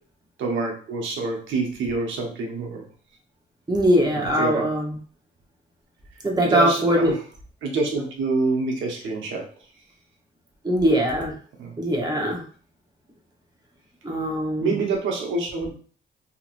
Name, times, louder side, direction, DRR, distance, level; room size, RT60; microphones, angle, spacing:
voice 1, 0.4-2.8 4.2-4.7 6.4-7.2 7.6-9.4 11.6-11.7 14.6-15.7, right 3 dB, 75° right, 1 dB, 0.9 m, -26 dB
voice 2, 3.7-4.9 6.2-7.2 10.6-11.3 11.8-12.4 14.0-14.7, equal, 20° right, -1 dB, 0.9 m, -21 dB
2.9 x 2.9 x 2.5 m, 0.43 s
cardioid pair, 90°, 20 cm